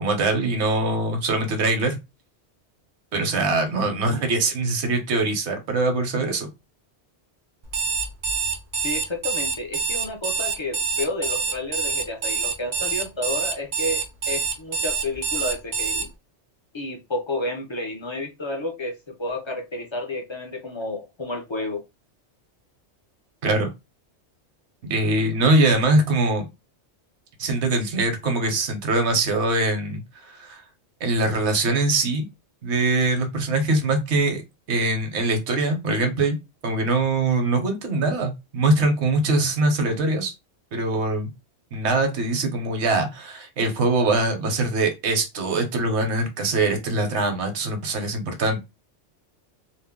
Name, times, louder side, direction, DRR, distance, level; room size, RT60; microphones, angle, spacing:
voice 1, 0.0-2.0 3.1-6.5 23.4-23.7 24.8-26.4 27.4-30.6 31.0-32.3 32.6-34.4 34.7-36.4 36.6-40.3 40.7-41.3 41.7-48.6, right 2 dB, 75° right, 1.1 m, -22 dB
Alarm, 7.6-16.1, right 5 dB, 50° right, 0.4 m, -26 dB
voice 2, 8.8-16.1 16.7-21.8, left 2 dB, 45° left, 0.4 m, -31 dB
2.5 x 2.0 x 3.5 m
omnidirectional pair, 1.2 m